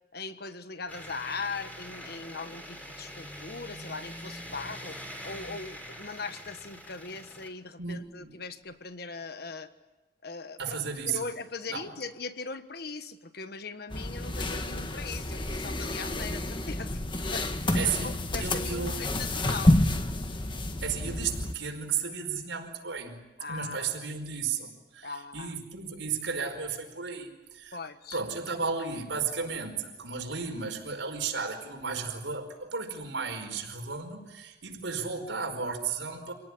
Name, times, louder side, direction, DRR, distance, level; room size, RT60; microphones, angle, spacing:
voice 1, 0.1-5.0 5.2-9.7 10.2-10.8 11.1-17.7 18.0-19.8 23.4-23.9 25.0-25.6 27.7-28.2, left 4 dB, 55° left, 10 dB, 1.4 m, -40 dB
sound 1, 0.9-7.5, equal, 10° left, 3.3 m, -44 dB
voice 2, 7.8-8.3 10.6-11.2 11.7-11.8 16.2-16.3 17.7-19.0 20.8-23.2 23.5-27.8 28.1-36.3, right 5 dB, 85° right, 4 dB, 4.9 m, -34 dB
sound 2, 13.9-21.5, left 1 dB, 25° left, 1.4 m, -29 dB
28.0 x 18.0 x 10.0 m, 1.1 s
head